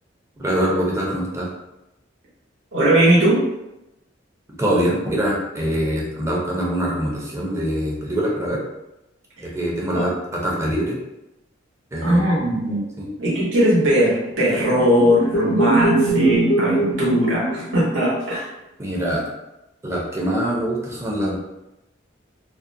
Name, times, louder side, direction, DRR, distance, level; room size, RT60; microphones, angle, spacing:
voice 1, 0.4-1.5 4.5-8.6 9.4-11.0 11.9-12.2 13.0-13.1 18.8-19.2 19.8-21.4, equal, 15° right, -4 dB, 0.5 m, -24 dB
voice 2, 2.7-3.4 9.9-10.1 12.0-12.8 13.2-18.5, right 1 dB, 80° right, -6 dB, 0.8 m, -19 dB
sound 1, 14.2-18.1, right 2 dB, 50° left, 0.5 m, -22 dB
2.4 x 2.1 x 2.6 m, 0.91 s
head